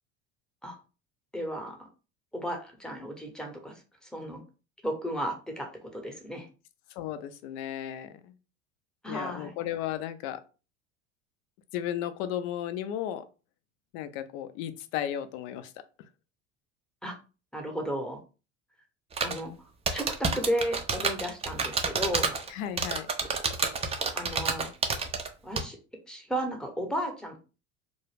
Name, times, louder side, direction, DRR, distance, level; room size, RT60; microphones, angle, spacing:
voice 1, 1.3-1.9 2.3-4.4 4.8-6.5 9.0-9.5 17.0-17.2 17.5-18.2 19.2-19.5 19.9-22.3 24.2-24.7 25.4-25.8 26.1-27.4, equal, ahead, 3 dB, 0.8 m, -34 dB
voice 2, 6.9-8.3 9.1-10.4 11.7-13.2 13.9-15.7 22.5-23.1, left 11 dB, 60° left, 11 dB, 0.5 m, -34 dB
sound 1, 19.1-19.4 19.9-22.5 22.8-25.3 25.6-25.7, right 4 dB, 15° right, 0.4 m, -28 dB
2.2 x 2.0 x 3.3 m, 0.33 s
hypercardioid pair, 75°, 36 cm